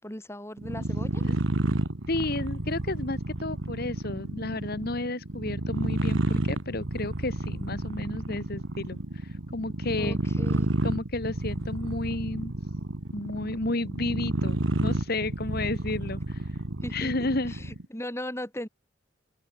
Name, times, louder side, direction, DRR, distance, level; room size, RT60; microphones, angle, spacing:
voice 1, 0.0-1.2 10.0-10.7 16.8-18.7, left 1 dB, 15° left, 5.1 m, -38 dB
sound 1, 0.6-17.9, right 1 dB, 70° right, 1.7 m, -30 dB
voice 2, 2.1-10.2 10.8-12.5 13.1-16.6 16.9-17.7, left 2 dB, 50° left, 1.8 m, -32 dB
open air
head